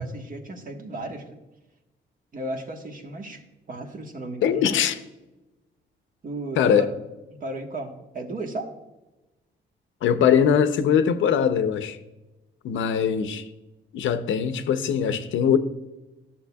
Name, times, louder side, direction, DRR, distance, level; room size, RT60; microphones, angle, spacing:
voice 1, 0.0-1.4 2.3-3.4 3.7-4.7 6.2-6.9 7.4-8.7, right 2 dB, 45° right, 1.4 m, -34 dB
voice 2, 4.4-5.0 6.6-6.9 10.0-12.0 12.6-13.4 13.9-15.6, left 8 dB, 75° left, 0.7 m, -21 dB
11.5 x 7.1 x 2.3 m
cardioid pair, 90°, 20 cm